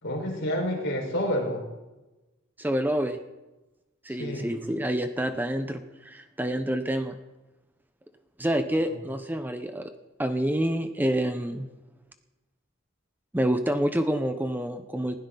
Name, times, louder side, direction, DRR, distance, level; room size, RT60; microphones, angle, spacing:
voice 1, 0.0-1.6 4.2-4.5 8.9-9.0, equal, 65° left, 0 dB, 4.8 m, -29 dB
voice 2, 2.6-3.2 4.0-7.2 8.4-9.9 10.2-11.7 13.3-15.2, right 1 dB, 10° right, 8 dB, 0.8 m, -27 dB
20.5 x 16.0 x 4.0 m, 1.1 s
head